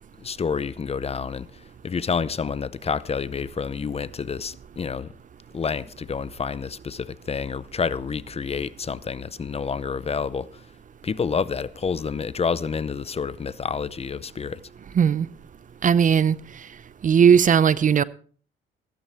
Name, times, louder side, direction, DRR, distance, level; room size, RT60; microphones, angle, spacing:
voice 1, 0.2-5.1 5.5-10.6 11.0-14.6, left 5 dB, 30° left, 0.6 m, -29 dB
voice 2, 14.9-15.3 15.8-16.4 17.0-18.0, right 7 dB, 40° right, 0.6 m, -17 dB
15.0 x 13.5 x 3.5 m
cardioid pair, 90°, 20 cm